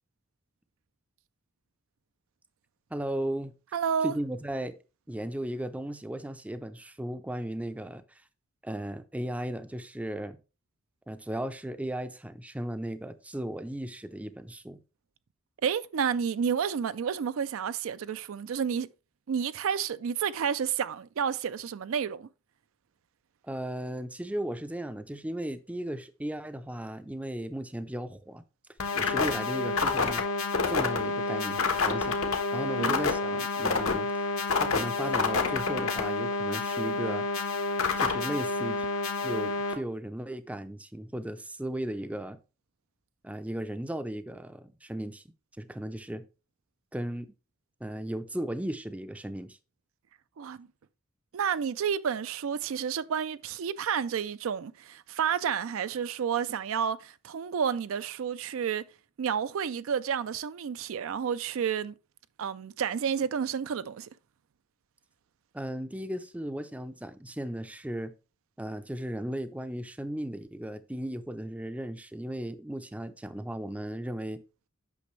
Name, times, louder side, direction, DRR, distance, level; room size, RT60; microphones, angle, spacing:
voice 1, 2.9-3.5 4.0-4.8 5.1-8.2 8.6-10.4 11.1-14.8 23.4-28.4 28.9-30.2 30.7-32.2 32.5-34.2 34.5-37.3 38.0-38.9 39.2-42.4 43.2-45.2 45.6-46.2 46.9-47.3 47.8-49.6 65.5-68.1 68.6-74.4, right 1 dB, 5° right, 0.4 m, -36 dB
voice 2, 3.7-4.2 15.6-18.9 19.3-22.3 32.7-33.0 50.4-50.7 51.3-58.8 59.2-61.9 62.4-64.1, right 7 dB, 70° right, 0.4 m, -30 dB
sound 1, 28.8-39.7, left 4 dB, 75° left, 1.2 m, -28 dB
8.5 x 5.9 x 3.1 m
head